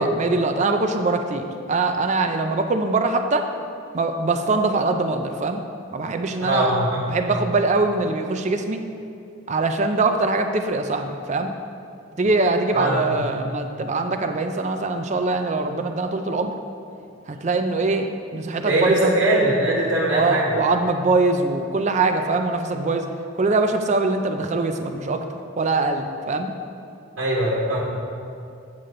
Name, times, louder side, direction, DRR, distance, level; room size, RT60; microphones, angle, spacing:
voice 1, 0.0-3.5 3.9-5.6 5.9-6.7 7.1-8.8 9.5-11.5 12.2-16.5 17.3-19.1 20.1-23.1 23.3-25.2 25.6-26.5, right 3 dB, 35° right, 6 dB, 0.5 m, -22 dB
voice 2, 6.4-7.2 12.7-13.2 18.6-20.6 27.2-27.8, right 1 dB, 90° right, -6 dB, 1.4 m, -21 dB
8.4 x 8.1 x 3.8 m, 2.5 s
head